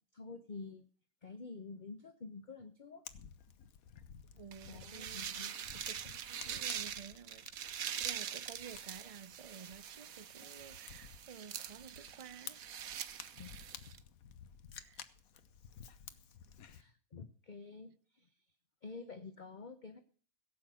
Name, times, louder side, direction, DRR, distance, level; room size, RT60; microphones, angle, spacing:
voice 1, 0.1-0.9 1.2-3.0 4.7-5.7 13.3-13.6 16.6-18.5 18.8-20.0, left 4 dB, 35° left, 1.0 m, -49 dB
Fire, 3.1-16.8, left 7 dB, 75° left, 1.4 m, -54 dB
voice 2, 4.3-12.6 13.0-13.2 14.8-15.0 18.9-19.3, right 7 dB, 60° right, 0.3 m, -53 dB
sound 1, 4.5-14.0, right 9 dB, 75° right, 1.3 m, -44 dB
16.5 x 8.5 x 6.3 m
omnidirectional pair, 1.5 m